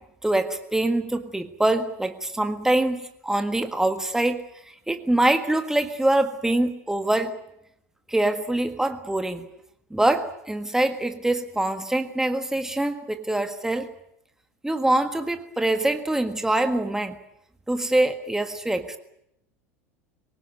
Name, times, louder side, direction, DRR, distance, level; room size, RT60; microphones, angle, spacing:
voice 1, 0.2-4.4 4.9-7.4 8.1-9.5 9.9-13.9 14.6-17.1 17.7-19.0, right 1 dB, 5° right, 8 dB, 1.6 m, -24 dB
25.0 x 17.5 x 9.3 m, 0.79 s
figure-of-eight pair, 75°, 8 cm